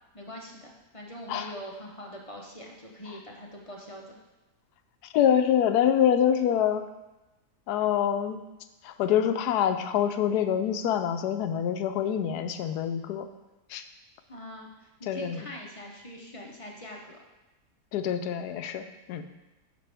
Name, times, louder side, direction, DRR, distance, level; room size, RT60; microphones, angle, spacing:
voice 1, 0.1-4.2 14.3-17.2, equal, 30° left, 0 dB, 0.6 m, -43 dB
voice 2, 5.1-6.8 7.7-8.4 8.8-13.3 13.7-13.8 15.0-15.4 17.9-19.2, left 9 dB, 75° left, 9 dB, 1.1 m, -25 dB
9.2 x 5.9 x 3.4 m, 1.0 s
omnidirectional pair, 1.8 m